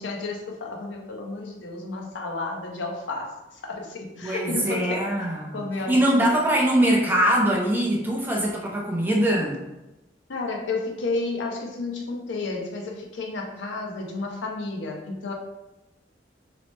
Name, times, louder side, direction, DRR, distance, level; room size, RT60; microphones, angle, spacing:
voice 1, 0.0-3.3 3.6-5.1 5.5-6.3 10.3-15.3, left 3 dB, 80° left, 1 dB, 0.5 m, -31 dB
voice 2, 4.2-9.6, right 1 dB, 10° right, -3 dB, 0.4 m, -22 dB
2.9 x 2.0 x 3.0 m, 1.0 s
head